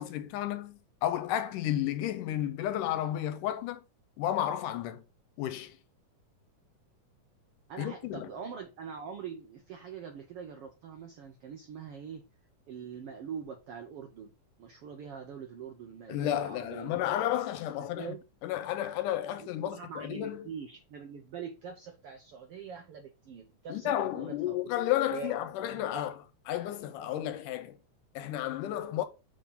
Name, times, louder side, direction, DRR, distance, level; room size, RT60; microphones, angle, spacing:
voice 1, 0.0-3.8 4.2-5.0 5.4-5.8 7.8-8.3 16.1-18.1 18.4-20.5 23.7-26.1 26.5-27.8 28.2-29.1, left 12 dB, 90° left, 2.3 m, -32 dB
voice 2, 7.7-12.2 12.7-14.3 14.6-16.9 18.0-18.2 19.4-24.6 25.1-25.3 25.6-25.8, right 6 dB, 80° right, 1.3 m, -43 dB
6.3 x 3.8 x 5.6 m
omnidirectional pair, 3.7 m